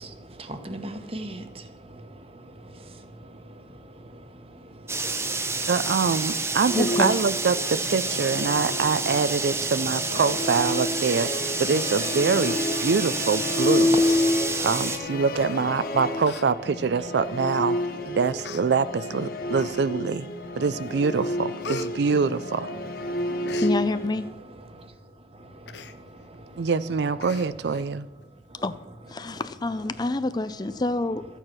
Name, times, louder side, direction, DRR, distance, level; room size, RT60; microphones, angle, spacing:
voice 1, 0.0-5.7 14.3-14.7 18.1-18.2 23.1-23.6 24.7-26.7 28.5-28.6 29.2-29.4, right 1 dB, 35° right, 1.1 m, -43 dB
sound 1, 4.9-15.0, right 3 dB, 15° right, 0.8 m, -29 dB
voice 2, 5.7-11.3 11.6-12.5 12.8-13.9 14.6-17.8 18.1-20.3 20.6-22.7 26.6-28.1, right 5 dB, 70° right, 0.4 m, -24 dB
Musical instrument, 6.7-24.3, left 1 dB, 55° left, 1.3 m, -30 dB
voice 3, 6.7-7.2 23.6-24.3 28.5-28.7 29.1-31.3, left 2 dB, 25° left, 0.4 m, -27 dB
Human voice, 14.0-14.9 15.7-15.8 16.2-16.5 16.8-16.9 17.7-17.8 18.4-18.6 19.5-20.1 20.6-20.9 21.2-22.9 23.2-23.7 25.7-26.0 26.3-26.4 26.7-26.8 27.2-27.8 28.2-28.3, left 4 dB, 75° left, 0.8 m, -40 dB
13.5 x 9.0 x 6.1 m
head